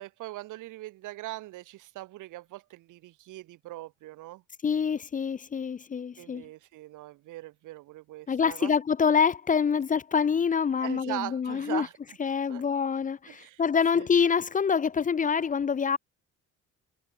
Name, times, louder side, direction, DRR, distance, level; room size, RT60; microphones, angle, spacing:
voice 1, 0.0-4.4 6.2-8.7 10.8-12.6 13.3-13.6 13.9-14.1, right 17 dB, 90° right, 1.5 m, -41 dB
voice 2, 4.6-6.4 8.3-11.9 12.2-16.0, left 6 dB, 25° left, 0.4 m, -26 dB
cardioid pair, 90°, 30 cm